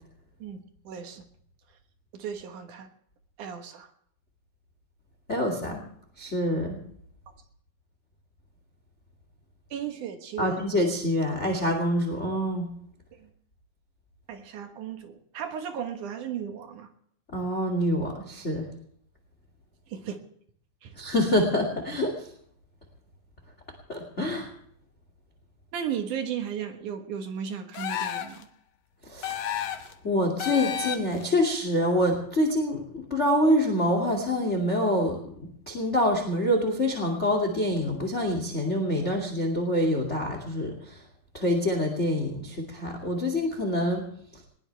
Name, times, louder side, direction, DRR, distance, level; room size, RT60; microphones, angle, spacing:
voice 1, 0.4-1.2 2.1-2.9 3.4-3.9 9.7-10.6 13.1-13.3 14.3-16.9 19.9-20.2 20.8-21.0 25.7-28.5, right 8 dB, 60° right, 6 dB, 2.5 m, -35 dB
voice 2, 5.3-5.8 6.2-6.8 10.4-12.7 17.3-18.6 21.0-22.3 23.9-24.5 29.0-29.4 30.0-41.0 41.3-44.0, left 1 dB, 25° left, 4 dB, 1.9 m, -26 dB
sound 1, 27.7-28.4 29.2-29.9 30.4-31.2, left 10 dB, 65° left, 2.0 m, -31 dB
20.5 x 19.0 x 3.4 m, 0.65 s
omnidirectional pair, 4.7 m